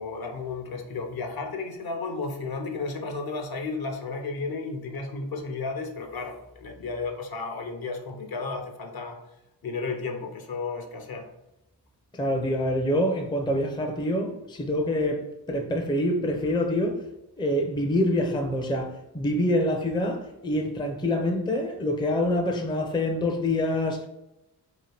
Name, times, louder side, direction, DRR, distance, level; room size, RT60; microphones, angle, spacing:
voice 1, 0.0-9.2 9.6-11.3, left 4 dB, 50° left, 0.7 m, -33 dB
voice 2, 12.1-17.0 17.4-24.1, left 1 dB, 10° left, 0.5 m, -26 dB
2.9 x 2.2 x 3.3 m
supercardioid pair, 40°, 46 cm